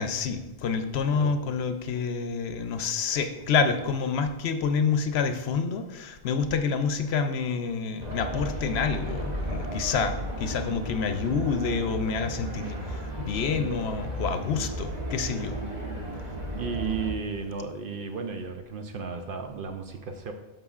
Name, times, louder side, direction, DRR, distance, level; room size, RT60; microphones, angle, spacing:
voice 1, 0.0-15.6 16.0-16.1 16.4-16.5, left 5 dB, 70° left, 8 dB, 0.8 m, -28 dB
sound 1, 8.0-17.1, right 1 dB, 40° right, 1.0 m, -34 dB
voice 2, 16.6-20.3, right 5 dB, 60° right, 6 dB, 0.7 m, -34 dB
12.5 x 5.4 x 2.4 m, 1.0 s
omnidirectional pair, 1.2 m